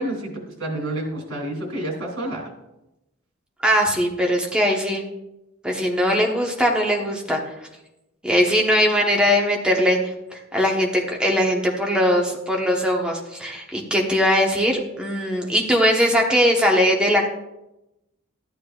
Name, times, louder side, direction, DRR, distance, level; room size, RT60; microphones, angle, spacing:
voice 1, 0.0-2.5, right 1 dB, 70° right, 0 dB, 2.9 m, -29 dB
voice 2, 3.6-5.0 5.6-7.4 8.2-10.0 10.3-17.3, equal, 5° right, -1 dB, 1.1 m, -20 dB
13.0 x 9.3 x 2.4 m, 0.93 s
head